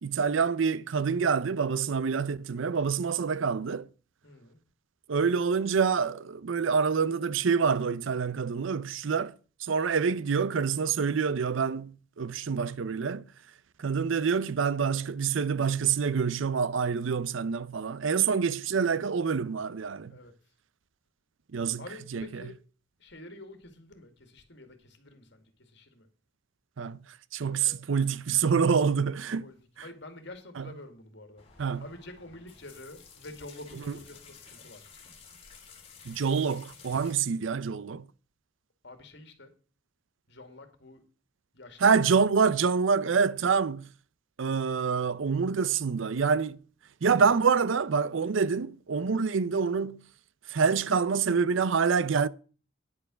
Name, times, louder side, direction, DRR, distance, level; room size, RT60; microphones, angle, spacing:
voice 1, 0.0-3.9 5.1-9.3 9.6-13.2 13.8-20.1 21.5-21.8 22.1-22.3 26.8-27.0 27.3-29.4 30.6-30.7 31.6-31.8 36.1-38.1 41.8-43.9 44.4-46.6 47.0-50.0 50.5-52.3, right 5 dB, 75° right, 0.5 m, -26 dB
voice 2, 4.2-4.6 20.1-20.3 21.8-22.6 23.0-26.1 27.5-27.9 29.4-31.4 31.8-34.8 38.8-39.5 40.3-41.0 41.5-41.9, left 2 dB, 60° left, 2.2 m, -48 dB
sound 1, 31.4-37.1, left 5 dB, 30° left, 2.9 m, -52 dB
10.0 x 6.9 x 6.2 m
head